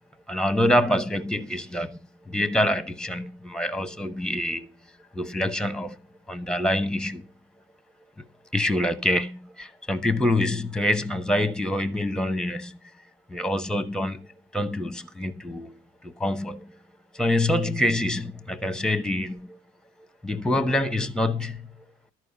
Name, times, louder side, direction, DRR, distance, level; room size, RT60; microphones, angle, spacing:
voice 1, 0.3-2.0 2.2-4.7 5.1-6.0 6.3-7.3 8.2-8.3 8.5-12.8 13.3-16.8 17.1-19.6 20.2-21.7, left 1 dB, ahead, 1.3 m, -26 dB
13.0 x 4.8 x 8.4 m
hypercardioid pair, 65°, 33 cm